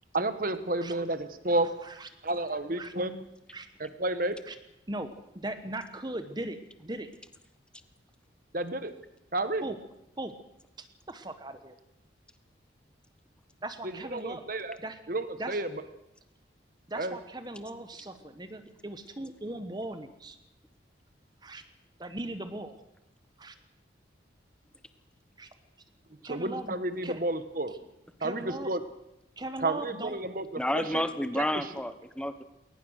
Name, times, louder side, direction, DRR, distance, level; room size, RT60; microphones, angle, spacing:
voice 1, 0.1-1.7 2.2-3.2 3.8-4.3 8.5-8.9 9.3-9.6 13.8-14.8 15.1-15.7 16.9-17.2 26.3-27.7 28.2-28.8 29.6-31.0 31.4-31.5, right 2 dB, 45° right, 11 dB, 1.4 m, -31 dB
voice 2, 4.9-7.1 9.6-9.8 10.2-10.3 10.8-11.7 13.6-14.4 14.8-15.0 15.4-15.6 16.9-20.4 21.4-21.6 22.0-22.7 23.4-23.5 25.4-25.5 26.2-26.8 27.0-27.2 28.2-28.7 29.4-30.2, right 1 dB, 20° right, 9 dB, 1.2 m, -39 dB
voice 3, 30.6-32.4, left 1 dB, 5° left, 10 dB, 1.0 m, -30 dB
21.5 x 19.0 x 6.6 m, 0.87 s
head